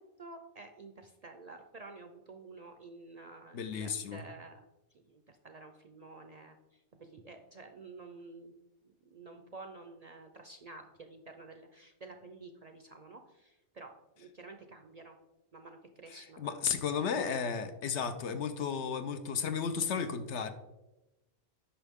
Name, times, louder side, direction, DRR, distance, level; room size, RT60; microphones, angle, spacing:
voice 1, 0.0-4.6 4.9-8.5 9.1-15.2 15.5-16.5 16.8-17.2, right 3 dB, 50° right, 6 dB, 0.5 m, -51 dB
voice 2, 3.5-4.2 16.1-20.5, left 6 dB, 75° left, 9 dB, 1.0 m, -34 dB
8.9 x 5.7 x 3.5 m, 0.99 s
omnidirectional pair, 1.2 m